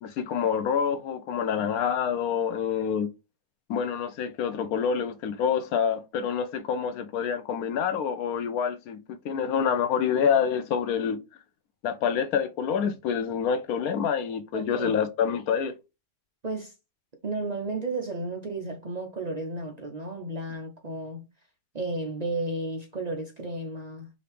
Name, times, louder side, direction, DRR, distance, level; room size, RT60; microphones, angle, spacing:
voice 1, 0.0-3.1 3.7-9.0 9.2-11.2 11.8-15.8, left 7 dB, 85° left, 1.1 m, -27 dB
voice 2, 14.5-14.9 16.4-16.7 17.2-21.3 21.7-24.1, right 2 dB, 45° right, 0.6 m, -33 dB
5.0 x 2.9 x 3.3 m
omnidirectional pair, 1.5 m